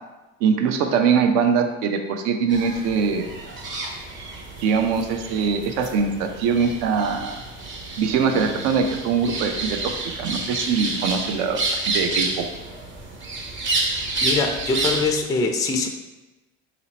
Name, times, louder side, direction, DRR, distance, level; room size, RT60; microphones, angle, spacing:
voice 1, 0.4-3.3 4.6-7.4 8.0-12.4, right 6 dB, 60° right, 5 dB, 0.6 m, -22 dB
sound 1, 2.5-15.1, right 2 dB, 30° right, 0.9 m, -29 dB
voice 2, 14.2-15.9, left 3 dB, 10° left, 4 dB, 0.3 m, -23 dB
4.1 x 2.8 x 2.8 m, 1.1 s
hypercardioid pair, 70°, 38 cm